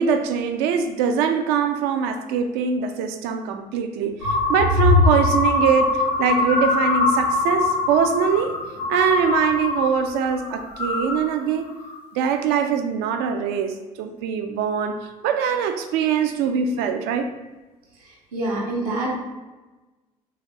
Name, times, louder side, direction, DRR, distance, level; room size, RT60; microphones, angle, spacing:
voice 1, 0.0-8.6 8.9-11.8 12.1-17.3, right 7 dB, 60° right, 7 dB, 0.4 m, -23 dB
sound 1, 4.2-10.0 10.3-11.2 11.7-12.0, left 3 dB, 80° left, 0.6 m, -22 dB
voice 2, 18.3-19.1, right 2 dB, 80° right, -4 dB, 0.8 m, -25 dB
3.4 x 2.3 x 3.2 m, 1.2 s
figure-of-eight pair, 50°, 19 cm